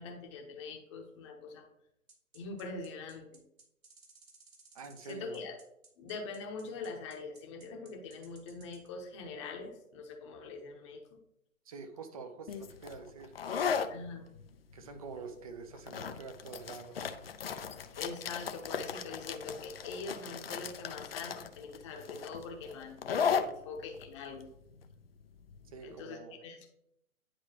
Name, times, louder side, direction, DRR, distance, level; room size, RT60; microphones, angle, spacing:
voice 1, 0.0-1.7 2.3-3.4 5.0-5.6 6.0-11.0 13.9-14.3 17.9-24.5 25.8-26.6, left 4 dB, 20° left, 3 dB, 0.9 m, -43 dB
sound 1, 2.1-8.9, right 4 dB, 70° right, 1.9 m, -59 dB
voice 2, 4.7-5.4 11.6-13.8 14.7-17.0 25.7-26.4, right 5 dB, 25° right, 8 dB, 0.7 m, -46 dB
sound 2, 12.5-25.9, left 6 dB, 45° left, 0.6 m, -37 dB
10.0 x 4.7 x 2.9 m, 0.79 s
figure-of-eight pair, 140°, 43 cm